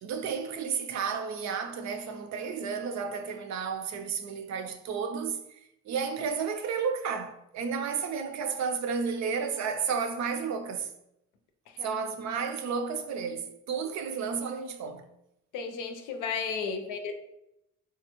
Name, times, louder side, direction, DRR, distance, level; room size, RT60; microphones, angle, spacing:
voice 1, 0.0-5.6 5.9-10.9 11.8-15.1, right 6 dB, 65° right, 0.5 m, -32 dB
voice 2, 15.5-17.1, left 5 dB, 85° left, 0.6 m, -34 dB
3.5 x 2.3 x 2.9 m
cardioid pair, 90°, 30 cm